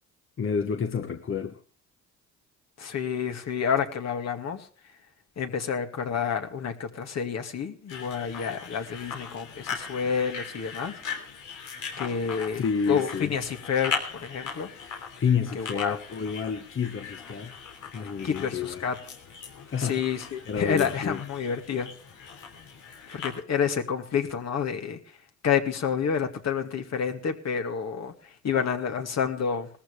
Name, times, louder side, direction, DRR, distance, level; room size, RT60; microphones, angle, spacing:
voice 1, 0.4-1.6 12.6-13.3 14.7-17.6 17.9-18.8 19.7-21.2, left 6 dB, 45° left, 1.3 m, -30 dB
voice 2, 2.8-4.7 5.4-10.9 12.0-13.9 14.2-14.7 15.5-16.0 18.2-19.0 19.8-21.9 23.1-25.0 25.4-29.7, left 7 dB, 60° left, 2.3 m, -29 dB
sound 1, 7.9-23.4, left 6 dB, 80° left, 3.2 m, -39 dB
19.0 x 14.0 x 3.3 m
cardioid pair, 90°, 30 cm